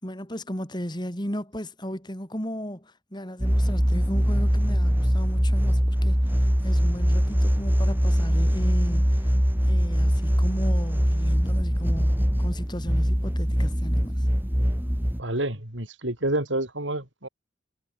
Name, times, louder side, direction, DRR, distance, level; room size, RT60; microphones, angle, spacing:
voice 1, 0.0-9.3 9.6-14.3, equal, 20° left, 6.1 m, -35 dB
sound 1, 3.4-15.2, equal, 10° right, 3.7 m, -22 dB
voice 2, 15.2-17.3, right 1 dB, 75° right, 6.8 m, -28 dB
head